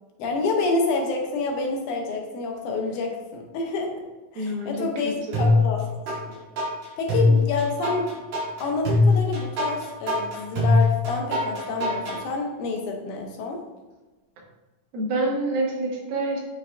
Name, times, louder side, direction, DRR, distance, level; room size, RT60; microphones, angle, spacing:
voice 1, 0.2-4.0 4.3-5.8 6.3-6.4 7.0-8.1 8.6-13.6, left 3 dB, 75° left, 1 dB, 1.9 m, -28 dB
voice 2, 4.4-5.6 14.9-16.4, right 2 dB, 85° right, -1 dB, 3.0 m, -27 dB
sound 1, 5.3-6.2 6.6-12.2, left 2 dB, 70° right, 3.6 m, -21 dB
8.4 x 4.5 x 2.5 m, 1.2 s
omnidirectional pair, 4.0 m